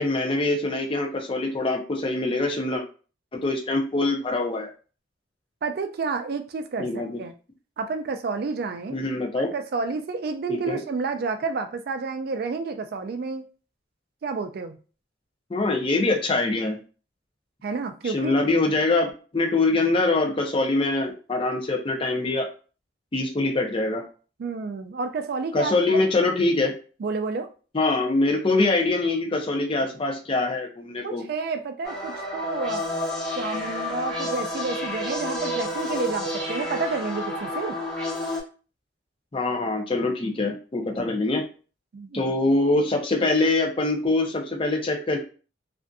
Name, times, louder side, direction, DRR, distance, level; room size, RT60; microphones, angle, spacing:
voice 1, 0.0-2.8 3.3-4.7 6.8-7.2 8.9-9.5 10.5-10.8 15.5-16.8 18.0-22.5 23.1-24.0 25.5-26.7 27.7-31.2 39.3-41.4 42.1-45.2, left 2 dB, 30° left, 2 dB, 0.5 m, -24 dB
voice 2, 5.6-7.3 7.8-9.0 9.4-13.5 14.2-14.8 17.6-18.4 19.7-19.9 24.4-26.0 27.0-27.5 31.0-32.8 33.3-37.8 41.9-42.3, right 4 dB, 55° right, 7 dB, 0.3 m, -30 dB
sound 1, 31.8-38.4, left 1 dB, 5° left, 0.9 m, -30 dB
2.5 x 2.5 x 2.3 m, 0.37 s
head